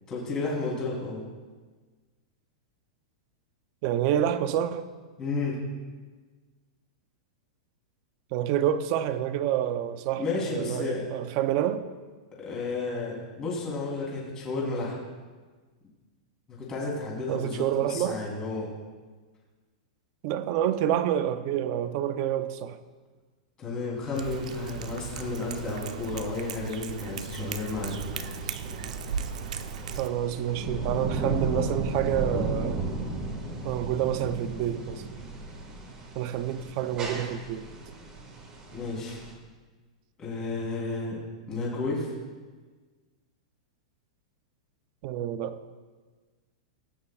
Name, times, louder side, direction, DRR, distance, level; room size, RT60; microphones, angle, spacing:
voice 1, 0.1-1.2 5.2-5.6 10.2-11.0 12.4-15.0 16.5-18.7 23.6-28.0 38.7-39.2 40.2-41.2 41.5-42.1, left 3 dB, 15° left, -4 dB, 3.2 m, -32 dB
voice 2, 3.8-4.8 8.3-11.8 17.3-18.2 20.2-22.8 30.0-32.8 33.6-35.0 36.2-37.7 45.0-45.6, right 11 dB, 35° right, 11 dB, 0.6 m, -28 dB
sound 1, 24.1-39.3, right 2 dB, 20° right, 1.7 m, -35 dB
Cat, 24.1-30.1, right 7 dB, 80° right, 0.8 m, -37 dB
19.5 x 9.9 x 2.4 m, 1.4 s
supercardioid pair, 175°, 4 cm